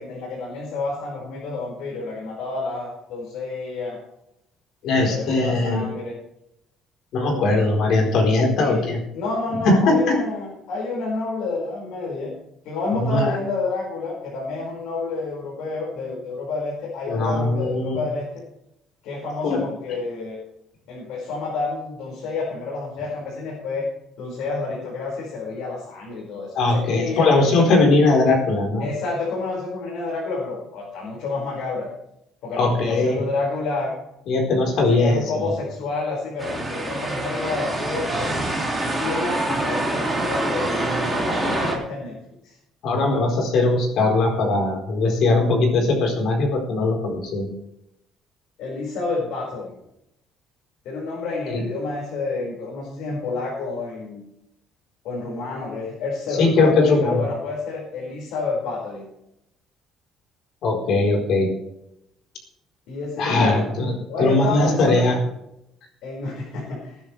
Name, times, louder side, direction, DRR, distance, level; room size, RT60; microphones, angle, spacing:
voice 1, 0.0-4.0 4.8-6.2 8.5-12.3 12.7-18.3 19.0-20.4 20.9-23.9 24.2-27.3 28.8-31.9 32.4-33.9 34.7-38.6 39.0-42.2 42.4-42.6 48.6-49.8 50.8-54.2 55.0-59.1 62.9-63.7 64.1-65.1 66.0-66.9, left 3 dB, 75° left, -4 dB, 5.5 m, -29 dB
voice 2, 4.8-5.8 7.1-9.0 9.6-10.2 13.0-13.3 17.1-18.0 19.4-19.6 26.5-28.8 32.6-33.2 34.3-35.5 42.8-47.5 51.5-51.6 56.4-57.2 60.6-61.5 63.2-65.2, left 2 dB, 60° left, 1 dB, 4.3 m, -20 dB
sound 1, 36.4-41.7, right 2 dB, ahead, 2.8 m, -25 dB
21.0 x 10.5 x 3.4 m, 0.82 s
cardioid pair, 175°, 0 cm